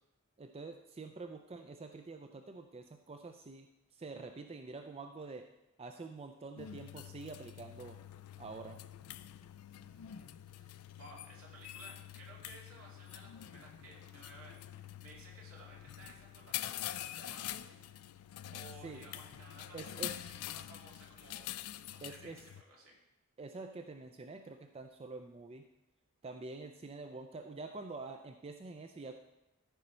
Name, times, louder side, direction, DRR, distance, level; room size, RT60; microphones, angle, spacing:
voice 1, 0.4-5.5 5.8-8.0 8.4-8.8 18.8-19.0 19.7-20.2 22.0-22.4 23.4-25.7 26.2-29.2, right 3 dB, 25° right, 5 dB, 0.4 m, -47 dB
sound 1, 6.6-22.6, left 12 dB, 85° left, 0.4 m, -46 dB
voice 2, 9.7-17.8 18.5-23.0, right 2 dB, 75° right, -2 dB, 2.4 m, -57 dB
13.5 x 5.2 x 4.3 m, 0.95 s
head